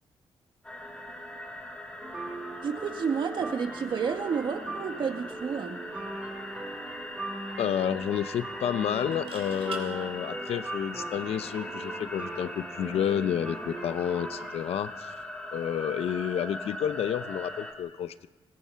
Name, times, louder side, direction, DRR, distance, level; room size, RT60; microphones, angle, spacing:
sound 1, 0.6-17.7, left 1 dB, 10° left, 3.1 m, -41 dB
sound 2, 2.0-14.6, right 2 dB, 15° right, 2.2 m, -40 dB
voice 1, 2.6-5.8, right 6 dB, 50° right, 1.8 m, -30 dB
sound 3, 6.4-6.5 6.7-6.8 9.0-9.8 11.7-11.9, right 7 dB, 65° right, 3.5 m, -44 dB
voice 2, 7.6-15.1 15.5-18.1, left 9 dB, 75° left, 0.7 m, -30 dB
25.5 x 18.5 x 5.7 m
wide cardioid pair, 175°, 10 cm